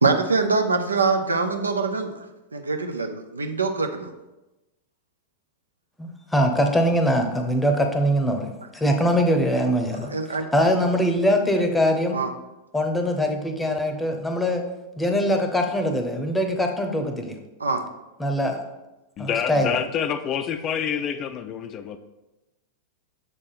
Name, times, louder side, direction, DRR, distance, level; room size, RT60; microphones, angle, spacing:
voice 1, 0.0-2.2 2.5-4.1 10.1-10.5 12.1-12.3 17.6-17.9, right 4 dB, 75° right, 6 dB, 0.5 m, -24 dB
voice 2, 6.0-10.1 10.5-12.2 12.7-14.6 15.0-17.4 18.2-18.6 19.2-19.8, equal, 5° left, 5 dB, 0.8 m, -22 dB
voice 3, 19.2-22.0, left 8 dB, 30° left, 10 dB, 0.4 m, -27 dB
6.8 x 3.7 x 4.2 m, 1.0 s
figure-of-eight pair, 90°, 0 cm